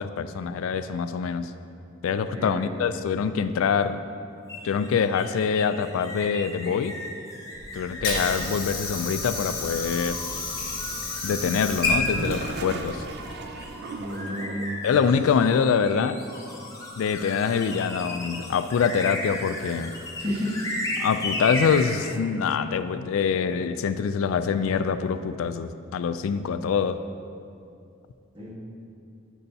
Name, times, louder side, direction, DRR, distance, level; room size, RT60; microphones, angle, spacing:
voice 1, 0.0-1.5 2.0-4.0 4.6-6.9 7.7-10.2 11.2-13.0 14.8-16.2 17.0-19.9 21.0-27.0, left 6 dB, 85° left, 12 dB, 0.3 m, -25 dB
voice 2, 2.3-2.7 13.9-14.8 20.2-20.7 28.3-28.5, left 1 dB, 25° right, -7 dB, 1.3 m, -31 dB
sound 1, 4.5-22.2, left 1 dB, 15° left, 0.6 m, -36 dB
Water / Sink (filling or washing), 7.5-13.6, left 2 dB, 50° left, 1.6 m, -30 dB
Toilet flush, 11.8-14.9, right 4 dB, 50° right, 0.3 m, -37 dB
11.0 x 5.5 x 2.7 m, 2.5 s
head